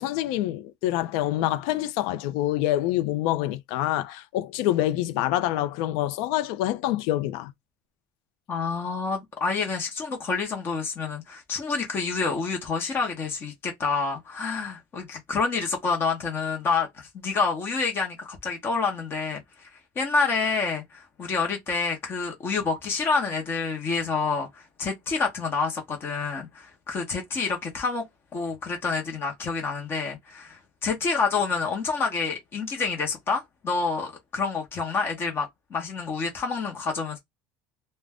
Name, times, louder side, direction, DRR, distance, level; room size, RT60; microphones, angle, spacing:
voice 1, 0.0-7.5, left 14 dB, 75° left, 0.5 m, -26 dB
voice 2, 8.5-19.4 20.0-28.0 28.3-37.2, left 4 dB, 25° left, 0.8 m, -28 dB
2.5 x 2.1 x 3.4 m
cardioid pair, 165°, 8 cm